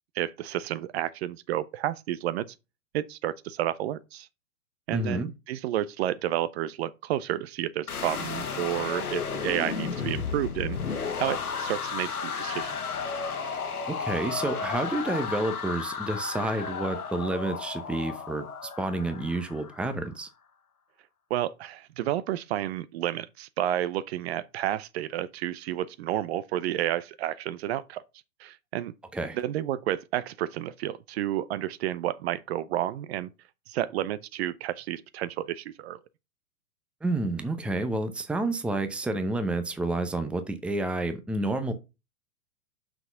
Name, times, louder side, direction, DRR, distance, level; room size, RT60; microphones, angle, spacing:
voice 1, 0.1-2.5 2.9-4.3 4.9-12.7 21.3-28.0 28.4-28.9 29.3-33.3 33.7-36.0, right 12 dB, 45° right, 0.6 m, -31 dB
voice 2, 4.9-5.3 13.9-20.3 29.1-29.4 37.0-41.7, right 2 dB, 5° right, 0.7 m, -29 dB
sound 1, 7.9-19.9, left 6 dB, 90° left, 1.5 m, -33 dB
6.0 x 5.9 x 5.6 m
hypercardioid pair, 115°, 43 cm